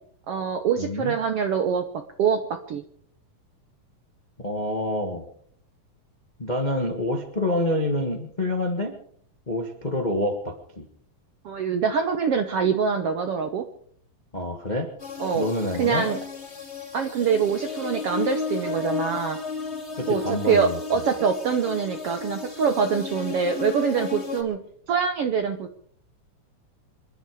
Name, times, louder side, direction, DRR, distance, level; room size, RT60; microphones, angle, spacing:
voice 1, 0.3-1.8 2.2-2.8 11.4-13.6 15.2-15.5 15.8-16.2 16.9-19.4 20.1-24.6 24.9-25.8, right 6 dB, 70° right, 7 dB, 1.4 m, -24 dB
voice 2, 0.8-1.1 4.4-5.2 6.4-8.9 9.5-10.9 14.3-14.9 15.3-16.1 20.0-20.8, left 1 dB, 45° left, 4 dB, 0.5 m, -27 dB
sound 1, 15.0-24.4, left 5 dB, 20° left, 2.8 m, -33 dB
26.0 x 11.0 x 4.9 m, 0.62 s
omnidirectional pair, 3.9 m